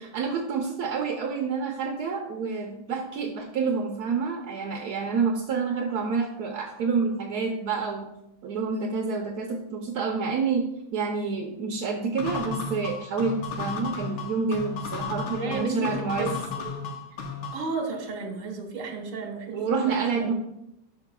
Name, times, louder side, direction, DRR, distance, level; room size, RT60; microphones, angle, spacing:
voice 1, 0.1-8.1 8.4-16.3 19.5-20.3, right 5 dB, 65° right, 2 dB, 1.0 m, -28 dB
sound 1, 12.2-17.7, left 5 dB, 70° left, 1.6 m, -34 dB
voice 2, 15.3-15.9 16.2-16.3 16.6-16.8 17.5-20.3, right 3 dB, 45° right, 3 dB, 1.4 m, -33 dB
10.5 x 5.9 x 2.2 m, 0.83 s
omnidirectional pair, 2.2 m